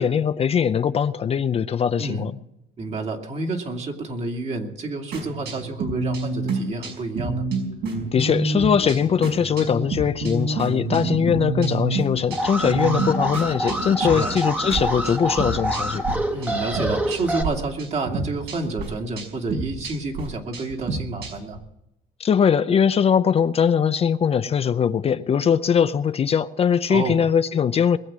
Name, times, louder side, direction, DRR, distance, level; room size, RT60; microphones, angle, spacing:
voice 1, 0.0-2.3 8.1-16.0 22.2-28.0, left 7 dB, 35° left, 0.6 m, -21 dB
voice 2, 2.0-2.3 2.8-7.5 14.0-14.3 16.3-21.6 26.9-27.2, right 2 dB, 40° right, 2.5 m, -29 dB
sound 1, 5.1-16.1 16.4-17.5 17.8-21.6, right 3 dB, 75° right, 5.1 m, -29 dB
Alarm, 12.3-17.4, equal, 10° right, 1.4 m, -26 dB
21.0 x 7.9 x 7.5 m
cardioid pair, 110°, 17 cm